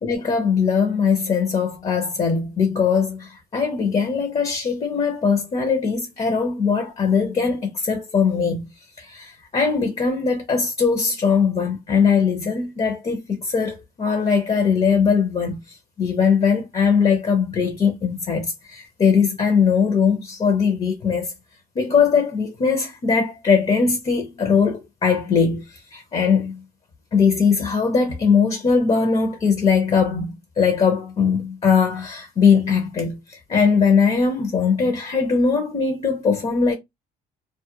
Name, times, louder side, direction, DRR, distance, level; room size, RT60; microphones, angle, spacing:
voice 1, 0.0-8.7 9.0-21.3 21.8-26.6 27.1-36.7, left 5 dB, 35° left, 0.7 m, -20 dB
2.3 x 2.1 x 2.7 m
cardioid pair, 110°, 17 cm